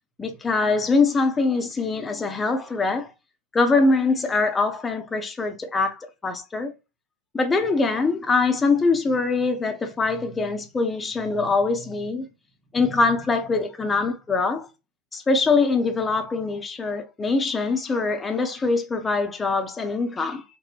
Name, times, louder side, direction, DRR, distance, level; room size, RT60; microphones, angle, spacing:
voice 1, 0.2-3.1 3.5-6.7 7.3-12.3 12.7-14.7 15.1-20.4, left 3 dB, 15° left, 0.5 m, -23 dB
3.8 x 2.1 x 2.3 m
figure-of-eight pair, 90°, 0 cm